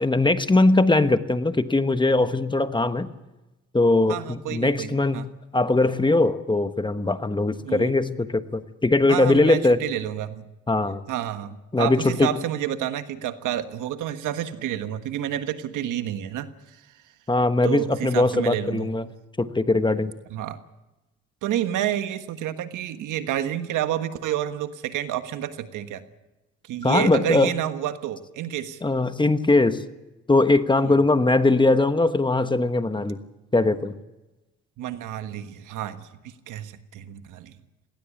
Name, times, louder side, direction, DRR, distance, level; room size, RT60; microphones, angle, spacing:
voice 1, 0.0-3.1 3.7-9.8 10.7-11.0 11.7-12.3 17.3-19.1 19.4-20.1 26.8-27.5 28.8-29.8 30.3-33.2 33.5-33.9, left 2 dB, 15° left, 10 dB, 1.2 m, -21 dB
voice 2, 4.1-5.3 7.6-7.9 9.1-10.5 11.1-16.8 17.6-18.9 20.3-20.6 21.4-26.0 26.6-28.8 30.8-31.0 34.8-37.6, right 11 dB, 85° right, 10 dB, 1.5 m, -29 dB
18.5 x 18.5 x 8.5 m, 1.0 s
cardioid pair, 90°, 30 cm